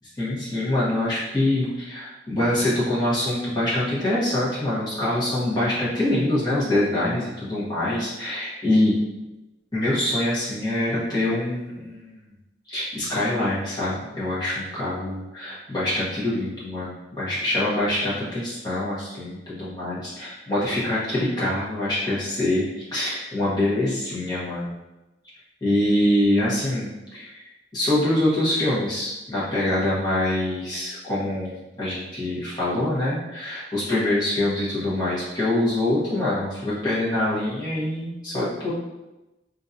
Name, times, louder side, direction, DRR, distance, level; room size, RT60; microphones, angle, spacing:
voice 1, 0.2-8.9 9.7-12.2 12.7-24.7 25.6-38.7, left 1 dB, 20° left, -9 dB, 1.2 m, -25 dB
3.8 x 2.6 x 2.7 m, 1.0 s
head